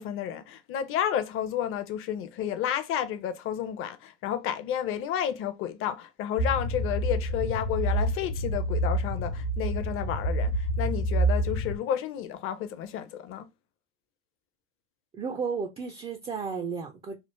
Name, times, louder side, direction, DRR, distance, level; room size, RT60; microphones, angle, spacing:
voice 1, 0.0-10.5 10.8-13.4, left 10 dB, 35° left, 0.6 m, -31 dB
sound 1, 6.4-11.8, right 1 dB, 80° left, 1.1 m, -28 dB
voice 2, 15.2-17.2, right 5 dB, 15° right, 0.4 m, -33 dB
3.2 x 2.0 x 3.1 m
hypercardioid pair, 90°, 37 cm